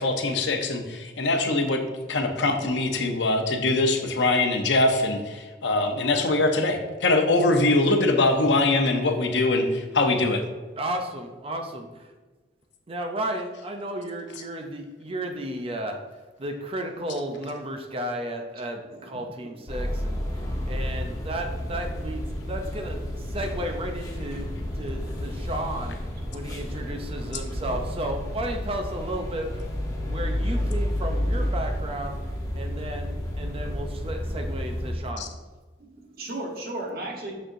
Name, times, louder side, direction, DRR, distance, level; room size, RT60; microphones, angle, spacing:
voice 1, 0.0-1.8 2.1-10.4 35.2-35.3, left 2 dB, 85° left, 5 dB, 0.8 m, -23 dB
voice 2, 10.8-12.1 12.9-16.0 16.4-24.5 24.7-26.0 26.3-29.7 30.0-32.2 32.5-35.3, right 1 dB, 30° right, 4 dB, 0.5 m, -33 dB
voice 3, 18.9-19.5 20.4-20.6 26.3-26.7 29.9-30.2 35.9-37.3, right 1 dB, 60° right, 0 dB, 1.2 m, -37 dB
sound 1, 19.7-34.9, equal, 20° left, 1.0 m, -31 dB
6.4 x 6.3 x 2.6 m, 1.3 s
head